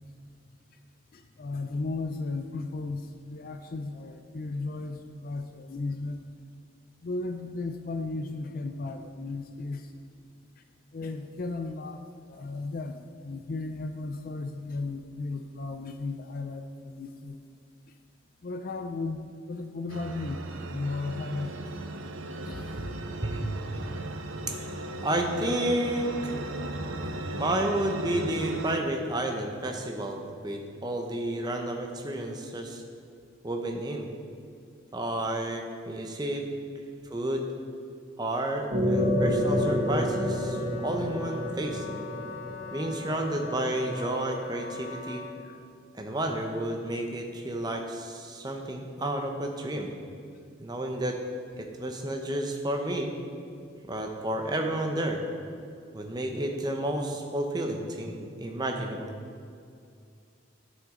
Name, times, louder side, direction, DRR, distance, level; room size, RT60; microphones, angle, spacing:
voice 1, 1.1-6.2 7.0-9.9 10.9-12.0 12.3-17.4 18.4-21.7 22.4-22.9 36.7-36.9 45.4-45.6, left 3 dB, 45° left, 7 dB, 0.4 m, -35 dB
sound 1, 19.9-28.8, right 2 dB, 85° right, 0.6 m, -37 dB
voice 2, 25.0-26.3 27.4-32.8 33.4-34.1 34.9-36.5 37.1-37.5 38.2-40.6 40.8-41.9 42.7-45.2 45.9-49.9 50.6-51.2 51.6-53.1 53.9-55.2 55.9-59.2, right 1 dB, 20° right, 3 dB, 0.7 m, -31 dB
sound 2, 38.7-43.8, equal, 50° right, 1.3 m, -28 dB
Wind instrument woodwind instrument, 38.9-45.5, left 5 dB, 85° left, 0.8 m, -42 dB
11.5 x 6.4 x 3.7 m, 2.4 s
head